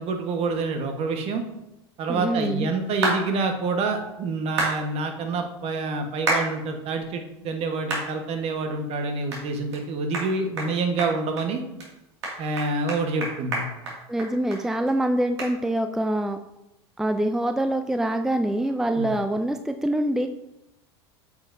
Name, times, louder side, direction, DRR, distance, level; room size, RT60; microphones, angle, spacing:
voice 1, 0.0-1.4 2.0-11.6 12.4-13.7 19.0-19.1, right 3 dB, 45° right, 5 dB, 1.3 m, -27 dB
voice 2, 2.1-2.7 14.1-16.4 17.0-20.3, right 1 dB, 5° right, 7 dB, 0.4 m, -25 dB
sound 1, 3.0-3.2 4.6-4.8 6.3-6.5 7.0-7.1 7.9-8.1 8.5-8.6 9.3-9.4 9.7-9.8 10.1-10.3 10.6-10.7 11.0-11.4 11.8-11.9 12.2-14.6 14.9-15.0 15.4-15.5, right 2 dB, 80° right, 2.2 m, -27 dB
8.8 x 5.8 x 2.7 m, 0.93 s
hypercardioid pair, 85°, 14 cm